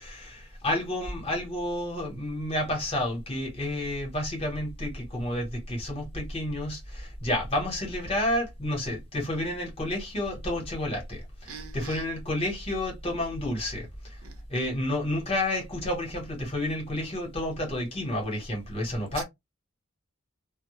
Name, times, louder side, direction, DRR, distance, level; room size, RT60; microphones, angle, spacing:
voice 1, 0.0-14.2 14.5-19.2, left 1 dB, 30° left, 0.9 m, -30 dB
voice 2, 11.5-12.0 14.2-14.3, right 5 dB, 90° right, 0.6 m, -42 dB
2.1 x 2.0 x 2.9 m
head